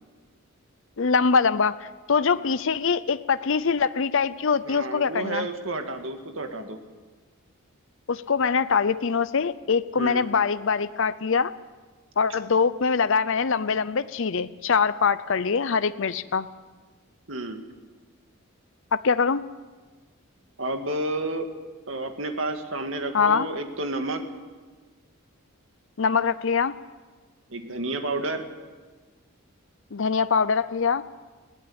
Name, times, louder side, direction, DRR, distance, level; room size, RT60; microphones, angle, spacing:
voice 1, 1.0-5.5 8.1-11.5 12.2-16.5 18.9-19.4 23.1-23.5 26.0-26.7 29.9-31.0, left 5 dB, 60° left, 14 dB, 0.6 m, -23 dB
voice 2, 4.6-6.8 10.0-10.3 17.3-17.6 20.6-21.5 21.9-24.2 27.5-28.5, right 2 dB, 65° right, 6 dB, 2.1 m, -31 dB
21.5 x 16.5 x 8.8 m, 1.4 s
head